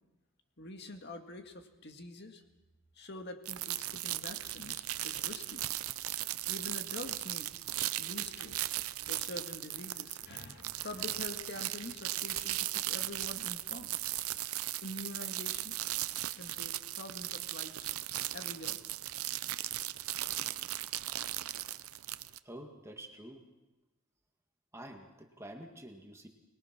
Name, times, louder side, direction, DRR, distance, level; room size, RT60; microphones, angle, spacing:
voice 1, 0.6-2.4 3.0-5.7 6.5-7.5 8.0-8.7 9.1-13.9 14.8-15.8 16.4-17.9 18.3-18.8, left 2 dB, 50° left, 5 dB, 2.0 m, -46 dB
sound 1, 3.5-22.4, right 15 dB, 90° right, 0.7 m, -37 dB
voice 2, 22.4-23.4 24.7-26.3, right 1 dB, 15° right, 2 dB, 2.0 m, -48 dB
24.0 x 21.5 x 6.1 m, 1.1 s
head